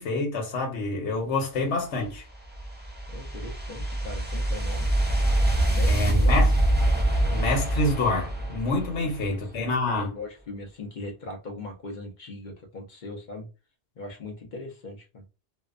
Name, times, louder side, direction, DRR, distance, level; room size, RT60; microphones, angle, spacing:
voice 1, 0.0-2.2 5.9-6.5 7.3-10.1, left 2 dB, 85° left, 1.1 m, -27 dB
sound 1, 2.0-9.3, right 1 dB, 15° right, 0.3 m, -24 dB
voice 2, 3.1-4.9 5.6-6.5 8.9-13.5 14.0-15.2, left 2 dB, 50° left, 0.7 m, -40 dB
2.7 x 2.1 x 2.4 m
omnidirectional pair, 1.2 m